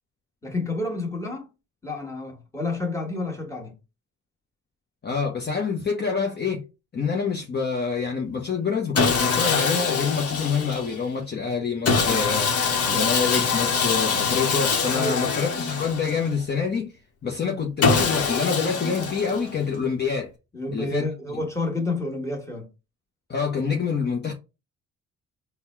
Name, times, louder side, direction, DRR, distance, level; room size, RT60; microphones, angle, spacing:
voice 1, 0.4-1.5 1.8-3.7 14.9-15.4 20.5-22.7, left 2 dB, 10° left, 1.7 m, -29 dB
voice 2, 5.0-6.6 6.9-12.6 12.9-16.9 17.2-20.3 20.7-21.1 23.3-24.3, left 5 dB, 35° left, 0.8 m, -26 dB
Sawing, 8.9-11.0 11.8-16.4 17.8-19.6, left 5 dB, 55° left, 1.1 m, -24 dB
4.1 x 2.3 x 4.5 m
cardioid pair, 90°, 30 cm